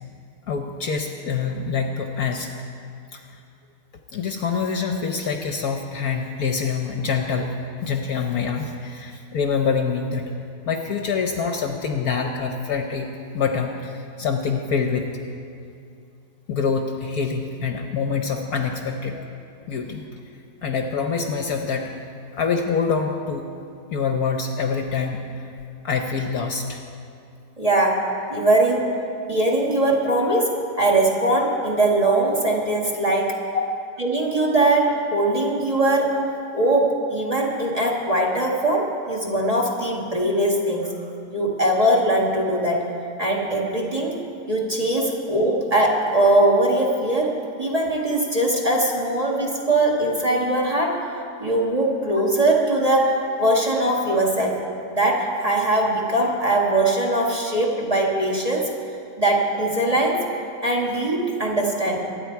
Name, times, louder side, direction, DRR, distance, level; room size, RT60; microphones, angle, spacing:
voice 1, 0.5-2.5 3.1-3.3 4.1-7.6 7.8-10.3 10.7-15.1 16.5-19.3 19.7-20.0 20.6-21.9 22.4-23.4 23.9-25.5 25.8-26.8 33.5-33.7 45.0-45.1, left 5 dB, 60° left, 4 dB, 1.2 m, -25 dB
voice 2, 27.6-29.0 29.3-33.4 34.0-36.2 36.5-40.9 41.3-42.9 43.2-44.2 44.5-51.1 51.4-54.6 54.9-58.7 59.2-60.3 60.6-62.1, right 1 dB, 20° right, -1 dB, 1.7 m, -21 dB
24.5 x 9.8 x 4.6 m, 2.5 s
omnidirectional pair, 2.0 m